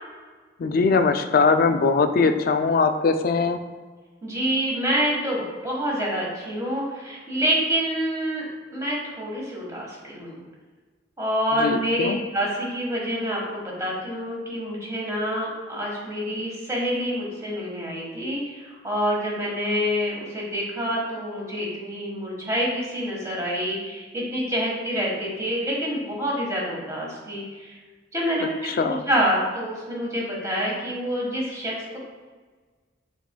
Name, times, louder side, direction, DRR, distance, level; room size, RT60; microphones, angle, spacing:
voice 1, 0.6-3.6 11.6-12.2 28.4-29.0, left 4 dB, 50° left, 8 dB, 0.3 m, -21 dB
voice 2, 4.2-10.4 11.2-27.8 28.1-28.5 28.8-32.0, equal, 15° right, -4 dB, 1.4 m, -27 dB
5.9 x 4.1 x 2.2 m, 1.4 s
head